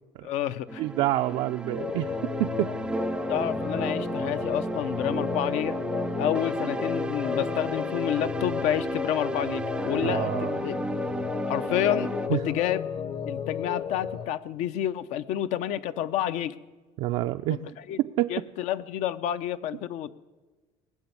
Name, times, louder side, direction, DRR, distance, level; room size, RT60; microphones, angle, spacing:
voice 1, 0.2-0.8 3.3-5.8 6.2-10.8 11.5-12.9 13.3-16.6 17.5-17.6 17.9-18.0 18.3-20.1, left 11 dB, 75° left, 12 dB, 0.7 m, -29 dB
sound 1, 0.7-12.3, right 2 dB, 5° right, 0.4 m, -33 dB
voice 2, 0.8-2.7 10.0-10.6 12.3-12.4 17.0-18.3, right 15 dB, 70° right, 6 dB, 0.4 m, -28 dB
sound 2, 1.8-14.3, left 7 dB, 40° left, 0.8 m, -33 dB
19.5 x 6.9 x 9.6 m, 1.3 s
cardioid pair, 140°, 12 cm